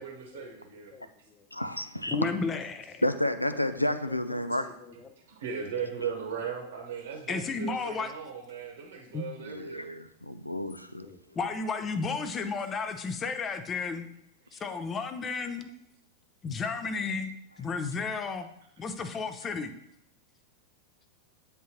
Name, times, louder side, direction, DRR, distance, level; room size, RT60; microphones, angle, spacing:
voice 1, 0.0-0.9 1.2-1.3 5.2-9.9 14.4-14.8, right 7 dB, 65° right, 1 dB, 1.0 m, -38 dB
voice 2, 1.5-2.3 3.0-4.7 9.4-11.1, left 1 dB, 85° left, 12 dB, 0.4 m, -30 dB
voice 3, 2.1-3.0 3.5-5.1 7.3-8.1 9.1-9.2 11.0-14.1 14.5-15.7 16.4-18.5 18.8-19.7, left 4 dB, 25° left, 9 dB, 0.6 m, -33 dB
9.3 x 3.7 x 2.9 m, 0.75 s
figure-of-eight pair, 90°, 0 cm